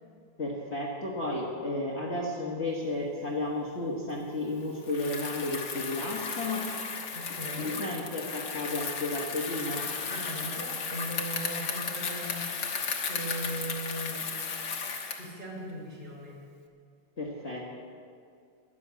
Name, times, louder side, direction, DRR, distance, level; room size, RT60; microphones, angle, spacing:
voice 1, 0.4-6.7 7.6-9.8 17.2-17.6, left 2 dB, 35° left, -4 dB, 1.7 m, -33 dB
Bicycle, 4.8-15.3, left 5 dB, 55° left, 1.8 m, -35 dB
voice 2, 7.1-7.8 10.0-14.3 15.1-16.4, right 1 dB, 20° right, -4 dB, 4.7 m, -39 dB
13.5 x 11.0 x 8.2 m, 2.3 s
omnidirectional pair, 2.3 m